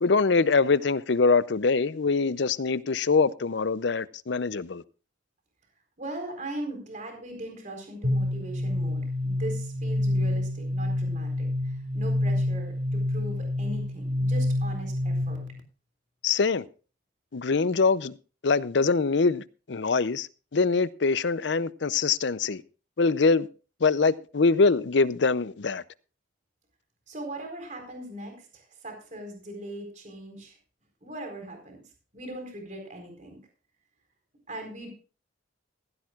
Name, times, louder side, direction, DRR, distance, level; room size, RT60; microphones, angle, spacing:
voice 1, 0.0-4.8 16.2-16.6 17.3-18.1 18.4-20.3 20.5-22.6 23.0-23.5 23.8-25.8, left 4 dB, 65° left, 0.6 m, -23 dB
voice 2, 6.0-15.4 27.1-30.6 31.0-33.4 34.5-34.9, right 1 dB, 40° right, 4.3 m, -39 dB
sound 1, 8.0-15.6, left 1 dB, 80° right, 2.4 m, -28 dB
16.5 x 15.0 x 2.4 m
head